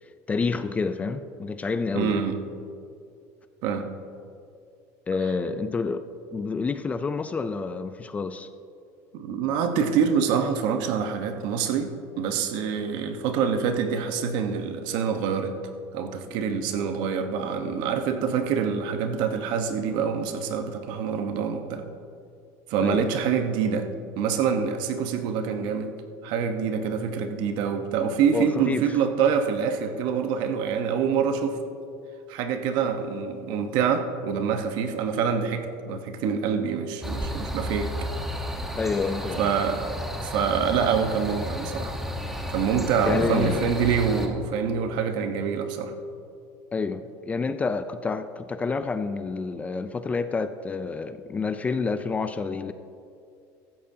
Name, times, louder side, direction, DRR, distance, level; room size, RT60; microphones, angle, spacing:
voice 1, 0.3-2.3 5.1-8.5 22.8-23.1 28.3-28.8 38.8-39.5 43.0-43.7 46.7-52.7, left 4 dB, 15° left, 11 dB, 0.4 m, -28 dB
voice 2, 1.9-2.4 3.6-3.9 9.1-15.5 15.9-21.9 22.7-23.9 24.2-25.9 26.2-31.6 32.3-37.9 39.4-39.8 40.2-42.0 42.5-45.9, right 6 dB, 65° right, 6 dB, 1.1 m, -26 dB
sound 1, 37.0-44.3, equal, 5° right, 1.2 m, -32 dB
16.0 x 13.5 x 2.8 m, 2.5 s
cardioid pair, 145°, 8 cm